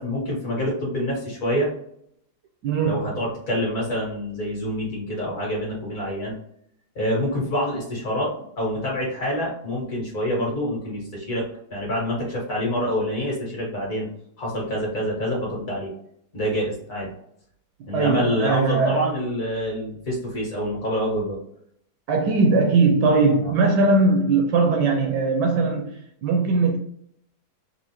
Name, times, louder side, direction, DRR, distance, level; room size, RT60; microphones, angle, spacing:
voice 1, 0.0-1.7 2.8-6.3 7.0-11.4 11.7-14.1 14.4-15.9 16.3-17.1 17.9-21.4 23.4-23.5, equal, 45° left, 1.8 m, -26 dB
voice 2, 2.6-3.2 17.9-19.1 22.1-26.8, right 3 dB, 75° right, 1.0 m, -20 dB
4.2 x 2.4 x 2.9 m
omnidirectional pair, 2.1 m